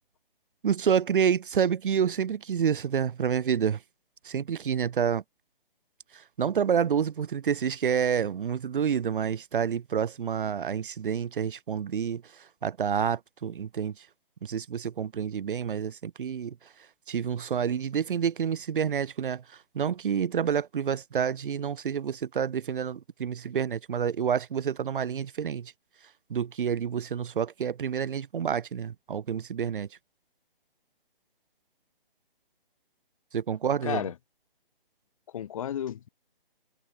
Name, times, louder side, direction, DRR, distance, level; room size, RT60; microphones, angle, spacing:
voice 1, 0.6-3.8 4.2-5.2 6.1-14.1 14.4-16.5 17.1-25.7 26.3-29.9 33.3-34.0, right 7 dB, 60° right, 0.7 m, -28 dB
voice 2, 33.8-34.1 35.3-36.1, left 10 dB, 35° left, 1.3 m, -32 dB
hypercardioid pair, 155°, 29 cm